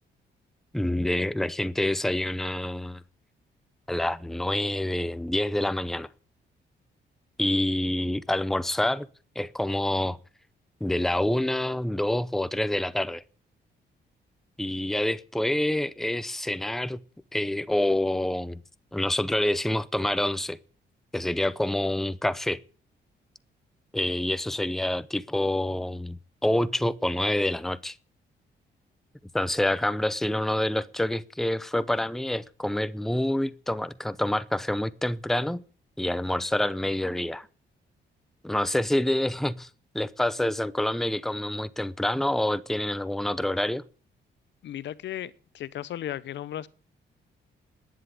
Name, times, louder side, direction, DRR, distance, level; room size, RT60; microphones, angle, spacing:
voice 1, 0.7-3.0 3.9-6.1 7.4-9.1 9.4-10.2 10.8-13.2 14.6-17.0 17.3-18.6 18.9-20.6 21.1-22.6 23.9-28.0 29.3-35.6 36.0-37.5 38.4-39.7 39.9-43.8, left 1 dB, ahead, 0.7 m, -27 dB
voice 2, 44.6-46.7, left 12 dB, 75° left, 0.8 m, -35 dB
11.5 x 10.0 x 9.6 m
cardioid pair, 120°, 19 cm